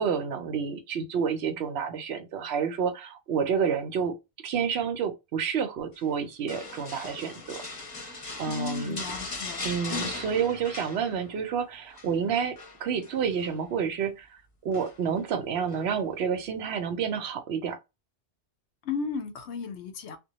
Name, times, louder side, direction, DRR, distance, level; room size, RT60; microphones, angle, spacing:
voice 1, 0.0-4.1 4.4-7.6 8.4-9.0 9.6-14.3 14.6-17.8, right 7 dB, 75° right, 0.8 m, -29 dB
sound 1, 6.5-11.5 11.7-12.1 12.6-13.6 14.7-15.2 15.7-15.8, left 3 dB, 35° left, 0.6 m, -39 dB
voice 2, 8.4-10.1 18.8-20.2, left 5 dB, 85° left, 0.9 m, -35 dB
2.2 x 2.0 x 2.8 m
omnidirectional pair, 1.1 m